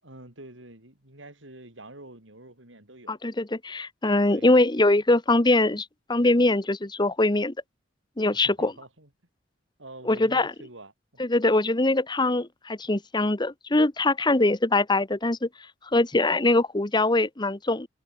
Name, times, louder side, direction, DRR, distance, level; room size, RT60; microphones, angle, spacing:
voice 1, 0.0-3.2 4.3-4.5 8.3-9.1 9.8-11.2, right 2 dB, 75° right, 7.3 m, -46 dB
voice 2, 3.1-7.5 8.2-8.7 10.0-10.5 11.2-15.5 15.9-17.9, left 2 dB, 25° left, 1.1 m, -22 dB
head